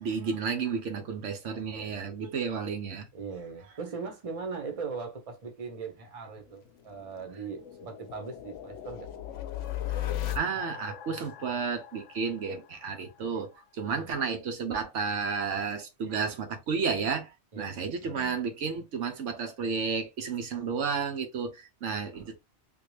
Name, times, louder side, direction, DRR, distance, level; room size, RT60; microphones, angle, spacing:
voice 1, 0.0-3.1 9.9-10.0 10.3-22.3, right 5 dB, 90° right, 1.1 m, -32 dB
voice 2, 1.6-2.0 3.1-9.1 14.0-14.1 17.5-17.7 18.0-18.4 22.1-22.3, right 5 dB, 35° right, 0.8 m, -40 dB
sound 1, 6.4-13.2, left 12 dB, 90° left, 0.9 m, -38 dB
3.5 x 2.4 x 3.2 m
omnidirectional pair, 1.2 m